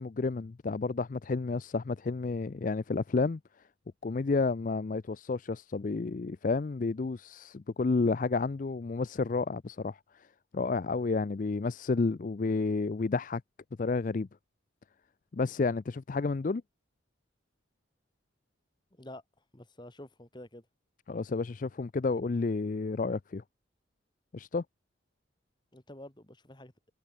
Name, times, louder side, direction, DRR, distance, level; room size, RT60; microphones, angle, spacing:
voice 1, 0.0-3.4 4.0-10.0 10.5-13.4 13.8-14.3 15.3-16.6 21.1-23.4 24.3-24.6, left 3 dB, 40° left, 0.4 m, -30 dB
voice 2, 18.9-19.2 19.5-20.7 25.7-26.7, left 1 dB, 25° left, 2.0 m, -48 dB
head